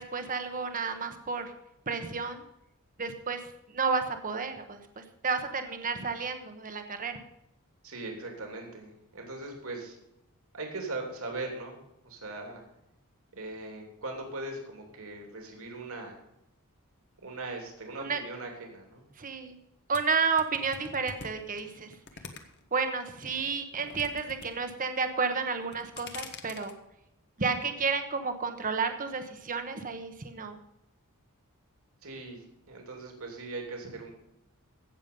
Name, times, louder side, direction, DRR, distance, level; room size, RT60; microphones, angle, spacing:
voice 1, 0.0-1.5 1.9-2.4 3.0-3.4 3.7-7.2 18.0-18.2 19.2-19.6 19.9-21.9 22.7-26.7 27.4-30.6, right 5 dB, 40° right, 7 dB, 1.1 m, -31 dB
voice 2, 7.8-10.0 10.5-11.8 12.0-12.6 13.3-16.2 17.2-19.0 32.0-34.1, right 2 dB, 70° right, 2 dB, 3.0 m, -40 dB
sound 1, 19.9-22.8 23.2-24.5 24.7-25.2 25.6-26.7, left 5 dB, 50° left, 1.4 m, -44 dB
16.5 x 7.1 x 5.3 m, 0.83 s
head